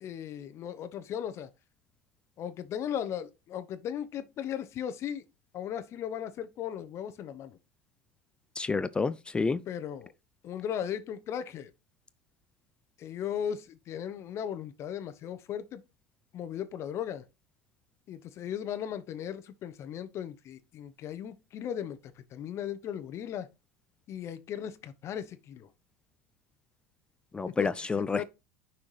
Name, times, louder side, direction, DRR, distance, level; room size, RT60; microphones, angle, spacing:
voice 1, 0.0-1.5 2.4-5.2 5.5-7.6 9.7-10.1 10.4-11.7 13.0-15.8 16.3-17.2 18.1-23.5 24.1-25.7 27.5-28.2, left 9 dB, 40° left, 0.9 m, -37 dB
voice 2, 8.6-9.6 27.3-28.2, left 4 dB, 15° left, 0.3 m, -29 dB
6.3 x 5.8 x 3.2 m
supercardioid pair, 130°, 7 cm